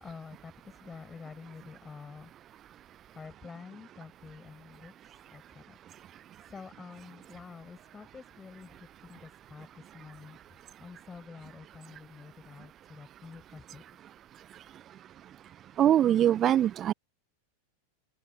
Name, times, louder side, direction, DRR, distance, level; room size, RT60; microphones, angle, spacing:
voice 1, 0.0-2.3 3.1-4.9 5.3-5.8 6.5-8.7 9.0-10.4 10.8-13.8, left 5 dB, 15° left, 7.2 m, -48 dB
voice 2, 15.8-16.9, right 11 dB, 30° right, 0.3 m, -23 dB
figure-of-eight pair, 90°, 0 cm